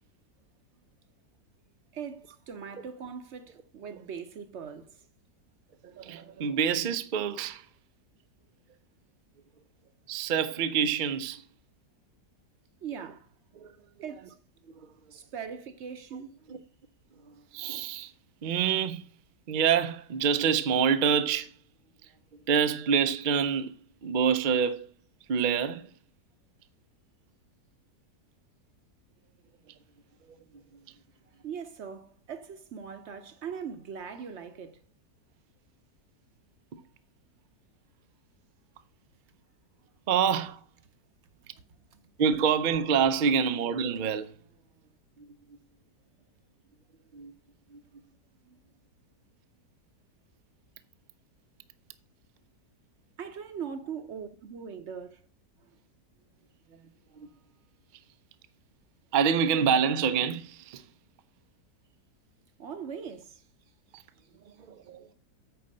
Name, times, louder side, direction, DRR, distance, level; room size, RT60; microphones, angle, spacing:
voice 1, 1.9-5.1 12.8-13.3 14.0-14.4 15.1-16.3 31.4-34.8 41.5-41.6 41.9-42.0 48.5-48.6 53.2-55.2 62.6-63.4 64.6-64.7, right 7 dB, 60° right, 0.8 m, -40 dB
voice 2, 5.8-7.7 10.1-11.4 13.6-13.7 16.5-16.6 17.3-18.1 18.4-19.1 19.5-21.5 22.5-23.7 24.0-24.9 25.3-25.9 40.1-40.6 42.2-44.3 45.2-45.3 47.1-47.3 47.7-47.8 57.1-57.3 59.1-60.8 63.9-64.0 64.4-65.1, right 7 dB, 85° right, 0.4 m, -26 dB
9.0 x 4.2 x 6.5 m
omnidirectional pair, 1.8 m